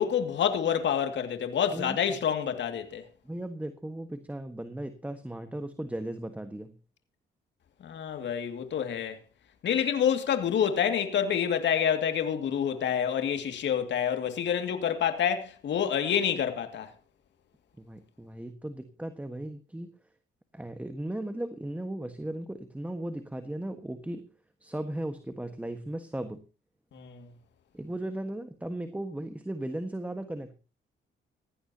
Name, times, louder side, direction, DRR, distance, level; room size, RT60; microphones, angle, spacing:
voice 1, 0.0-3.1 7.8-9.2 9.6-16.9 26.9-27.3, left 8 dB, 65° left, 2.3 m, -28 dB
voice 2, 3.2-6.7 17.8-19.9 20.5-24.3 24.6-26.4 27.7-30.6, right 1 dB, 5° right, 1.5 m, -36 dB
17.0 x 15.0 x 2.9 m
cardioid pair, 90°, 20 cm